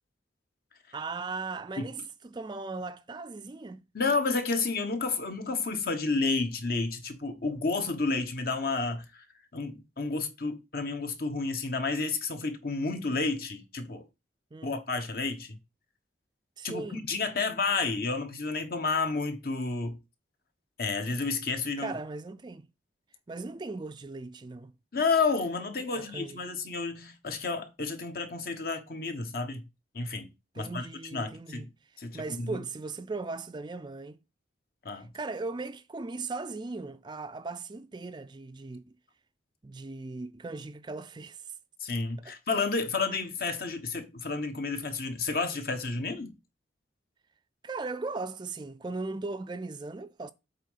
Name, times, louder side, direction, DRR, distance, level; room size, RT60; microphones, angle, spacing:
voice 1, 0.9-3.8 14.5-14.8 16.6-17.0 21.8-22.7 23.3-24.7 25.9-26.4 30.5-31.7 32.1-34.2 35.1-38.8 39.6-41.5 42.3-42.4 47.6-50.3, right 3 dB, 25° right, 0.4 m, -38 dB
voice 2, 3.9-9.2 9.5-14.0 14.6-15.6 16.6-20.0 20.8-22.0 24.9-29.6 29.9-30.3 30.6-31.7 32.0-32.6 34.8-35.1 41.8-46.4, left 4 dB, 55° left, 1.2 m, -31 dB
8.2 x 3.6 x 5.6 m
head